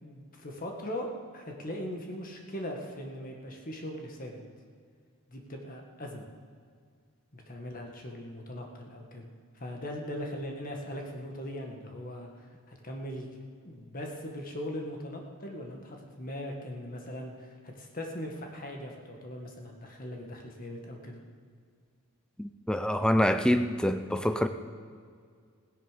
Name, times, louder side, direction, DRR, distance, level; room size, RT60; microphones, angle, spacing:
voice 1, 0.0-1.1 1.3-4.4 5.3-6.3 7.3-9.3 9.6-13.3 13.6-21.2, equal, 40° left, 2 dB, 1.8 m, -40 dB
voice 2, 22.4-24.5, equal, 5° left, 9 dB, 0.5 m, -26 dB
16.5 x 10.0 x 5.2 m, 2.1 s
head